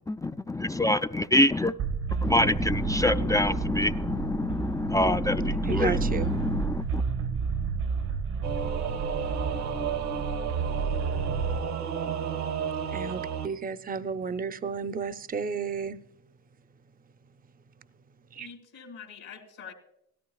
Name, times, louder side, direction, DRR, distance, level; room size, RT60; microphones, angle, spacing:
voice 1, 0.1-1.7 2.2-7.0, left 1 dB, 10° left, 0.3 m, -25 dB
sound 1, 1.8-11.6, right 5 dB, 80° right, 1.3 m, -31 dB
voice 2, 5.6-6.4 12.9-16.0 18.3-18.5, right 6 dB, 30° right, 0.6 m, -33 dB
Singing / Musical instrument, 8.4-13.5, right 7 dB, 65° right, 0.9 m, -32 dB
voice 3, 18.4-19.7, left 6 dB, 75° left, 2.4 m, -45 dB
17.0 x 13.5 x 2.3 m
cardioid pair, 90°, 30 cm